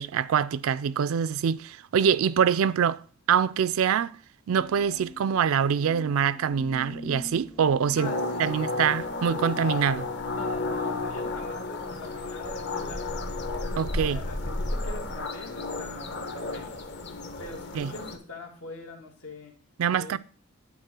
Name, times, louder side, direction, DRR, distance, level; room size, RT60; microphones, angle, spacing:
voice 1, 0.0-3.0 3.3-4.2 4.5-8.1 8.4-10.1 13.8-14.2 17.8-17.9 19.8-20.2, right 7 dB, 70° right, 0.4 m, -24 dB
sound 1, 4.5-10.6, left 2 dB, 10° left, 0.5 m, -45 dB
voice 2, 7.9-8.7 10.3-13.3 13.9-16.7 17.4-19.5 19.9-20.2, left 2 dB, 80° left, 2.2 m, -43 dB
sound 2, 8.0-18.2, left 2 dB, 55° left, 1.0 m, -32 dB
9.5 x 4.0 x 6.0 m
head